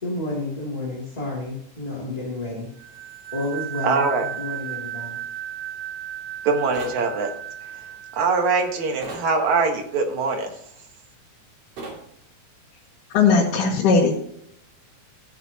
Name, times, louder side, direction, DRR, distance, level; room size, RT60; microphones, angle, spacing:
voice 1, 0.0-2.7 3.3-4.1 4.3-5.2, left 2 dB, 15° left, -5 dB, 2.5 m, -30 dB
sound 1, 2.8-9.2, right 11 dB, 85° right, 0.8 m, -35 dB
voice 2, 3.8-4.3 6.4-7.3 8.1-10.5, right 4 dB, 65° right, 3 dB, 2.7 m, -22 dB
sound 2, 6.7-7.0 9.0-9.3 11.8-12.0, right 2 dB, 50° right, 3.6 m, -35 dB
voice 3, 13.1-14.2, left 5 dB, 80° left, -3 dB, 3.1 m, -18 dB
14.5 x 9.3 x 2.9 m, 0.71 s
omnidirectional pair, 3.6 m